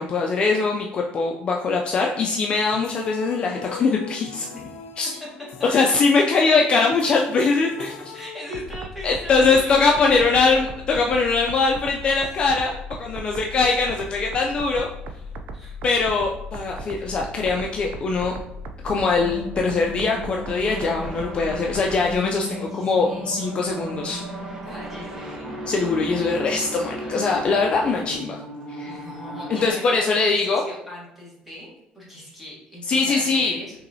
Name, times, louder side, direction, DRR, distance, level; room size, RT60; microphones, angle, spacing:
voice 1, 0.0-4.5 5.0-5.1 5.6-7.9 9.0-14.9 15.8-18.3 18.8-24.2 25.7-28.4 28.7-29.1 29.5-30.7 32.9-33.6, left 4 dB, 30° left, 1 dB, 0.3 m, -22 dB
sound 1, 2.7-9.0, left 7 dB, 90° left, 0.5 m, -42 dB
voice 2, 8.1-10.6 12.1-12.3 15.5-15.8 16.9-17.1 22.4-23.3 24.6-25.6 26.8-27.2 28.8-33.8, left 1 dB, 5° right, -5 dB, 1.3 m, -39 dB
sound 2, 8.5-22.2, equal, 60° right, 0.4 m, -37 dB
sound 3, 19.1-29.7, equal, 20° right, 0.7 m, -35 dB
5.6 x 3.0 x 2.7 m, 0.86 s
cardioid pair, 170°, 3 cm